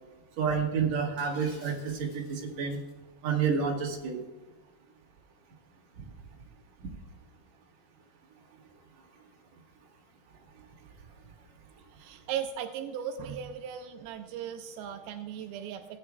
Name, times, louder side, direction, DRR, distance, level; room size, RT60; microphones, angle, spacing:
voice 1, 0.4-2.8 3.2-4.2, right 6 dB, 55° right, -1 dB, 2.7 m, -29 dB
Shatter, 1.2-2.9, left 2 dB, 60° left, 4.3 m, -54 dB
voice 2, 12.0-15.9, right 8 dB, 85° right, 6 dB, 2.5 m, -37 dB
17.5 x 9.7 x 2.4 m, 1.2 s
omnidirectional pair, 4.4 m